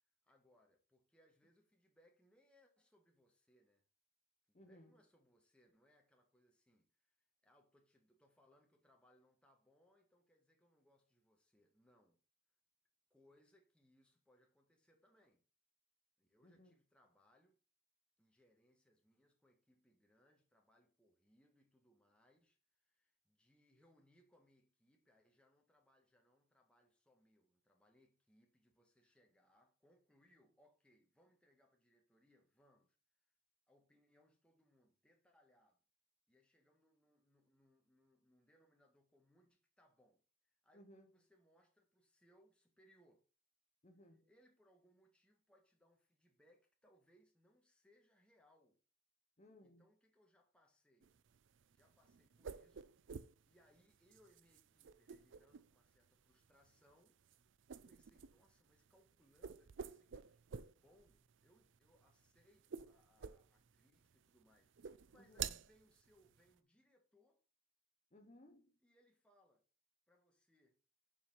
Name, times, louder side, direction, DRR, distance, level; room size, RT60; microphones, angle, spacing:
voice 1, 0.2-3.9 4.5-12.2 13.1-15.4 16.2-17.6 18.2-33.0 33.2-33.3 33.7-35.8 36.3-40.8 41.1-43.2 44.3-48.8 49.6-51.1 51.7-53.0 53.4-57.2 57.7-67.4 68.8-69.6 70.1-70.8, equal, 5° left, 1.5 m, -73 dB
voice 2, 4.5-5.0 16.4-16.7 40.7-41.2 43.8-44.3 49.4-49.9 65.2-65.6 68.1-68.7, left 1 dB, 35° left, 0.9 m, -62 dB
sound 1, 51.0-66.6, right 7 dB, 65° right, 0.5 m, -52 dB
7.1 x 4.8 x 5.5 m
head